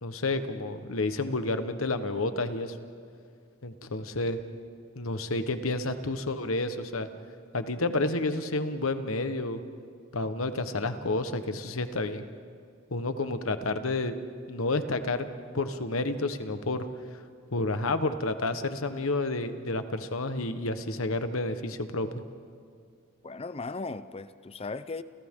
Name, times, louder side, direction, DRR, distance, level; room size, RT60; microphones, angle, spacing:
voice 1, 0.0-2.8 3.6-4.4 4.9-7.1 7.5-9.6 10.1-12.2 12.9-14.1 14.5-15.3 15.5-16.8 17.5-22.2, left 2 dB, 80° left, 1.2 m, -30 dB
voice 2, 23.2-25.0, left 3 dB, 30° left, 0.6 m, -37 dB
29.5 x 29.0 x 3.7 m
head